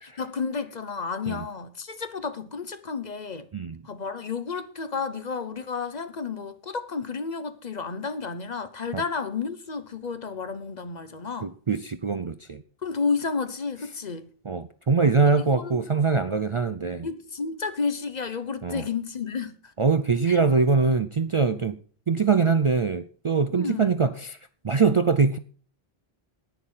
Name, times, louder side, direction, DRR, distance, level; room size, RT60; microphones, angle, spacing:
voice 1, 0.0-3.5 3.8-11.5 12.8-14.3 15.2-15.8 17.0-19.7 20.3-20.4 23.5-23.9, left 5 dB, 45° left, 0.9 m, -31 dB
voice 2, 11.4-12.6 14.5-17.1 18.6-18.8 19.8-21.8 22.1-24.4 24.6-25.4, right 4 dB, 40° right, 0.5 m, -23 dB
10.5 x 9.3 x 5.6 m
omnidirectional pair, 1.0 m